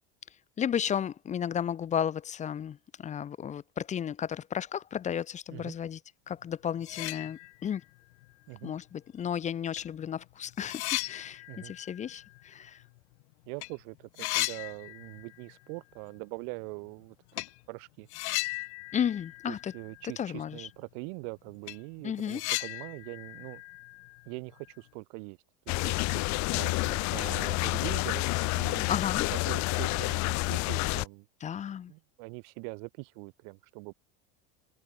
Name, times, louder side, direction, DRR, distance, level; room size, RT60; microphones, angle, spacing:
voice 1, 0.6-6.0 6.3-7.8 8.6-12.8 18.9-19.7 20.2-20.7 22.0-22.4 28.9-29.3 31.4-31.9, left 8 dB, 20° left, 0.6 m, -33 dB
sound 1, 6.4-6.5 6.8-7.8 8.2-8.3 9.3-9.4 9.8-13.2 13.5-13.7 13.9-15.5 15.8-15.9 17.3-17.6 18.1-20.2 20.5-20.6 21.1-21.2 21.5-24.7, left 23 dB, 80° left, 2.7 m, -37 dB
voice 2, 13.5-17.2 17.7-18.1 19.5-23.6 24.2-25.4 25.7-26.2 26.5-28.2 28.5-28.9 29.3-31.3 31.9-33.9, right 40 dB or more, 70° right, 6.5 m, -42 dB
sound 2, 25.7-31.1, left 25 dB, 55° left, 0.9 m, -29 dB
supercardioid pair, 125°, 34 cm